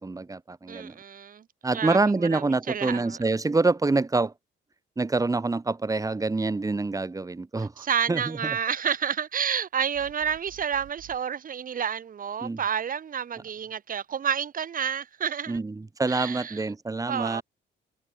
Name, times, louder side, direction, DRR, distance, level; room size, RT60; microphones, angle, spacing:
voice 1, 0.0-1.0 1.6-4.3 5.0-8.6 12.4-12.6 15.5-17.4, right 3 dB, 15° right, 1.2 m, -26 dB
voice 2, 0.7-1.4 1.7-3.2 7.8-15.6 16.1-16.7 17.1-17.4, right 8 dB, 45° right, 1.0 m, -30 dB
sound 1, 9.9-11.2, right 13 dB, 85° right, 6.9 m, -50 dB
cardioid pair, 90°, 20 cm